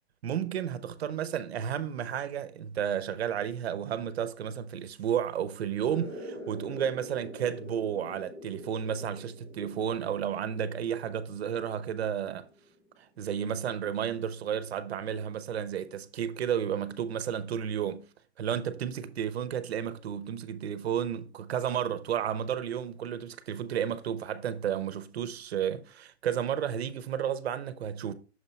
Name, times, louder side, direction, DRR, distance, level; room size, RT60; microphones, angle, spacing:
voice 1, 0.2-12.4 13.2-18.0 18.4-28.1, right 9 dB, 70° right, 0.9 m, -32 dB
sound 1, 5.9-13.0, equal, 10° left, 0.7 m, -46 dB
6.5 x 4.5 x 4.1 m
hypercardioid pair, 175°, 33 cm